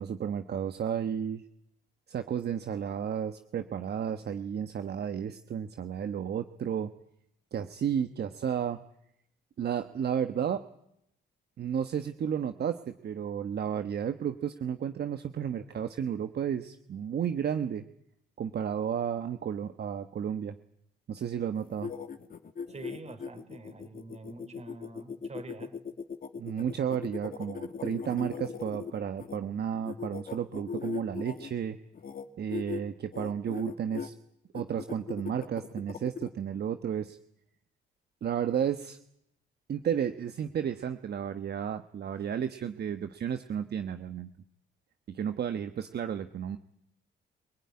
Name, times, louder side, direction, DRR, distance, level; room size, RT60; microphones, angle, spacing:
voice 1, 0.0-1.4 2.1-6.9 7.5-8.8 9.6-10.6 11.6-17.8 18.4-20.5 21.1-21.9 26.4-31.8 32.4-34.1 34.5-37.2 38.2-39.0 39.7-44.3 45.1-46.6, right 8 dB, 55° right, 9 dB, 1.3 m, -32 dB
sound 1, 21.6-29.4 29.8-31.5 31.9-32.2 32.5-32.8 33.1-34.1 34.5-36.3, left 6 dB, 45° left, 2.1 m, -39 dB
voice 2, 22.7-25.8, right 3 dB, 35° right, 10 dB, 4.1 m, -46 dB
25.0 x 18.0 x 9.8 m, 0.75 s
cardioid pair, 90°, 20 cm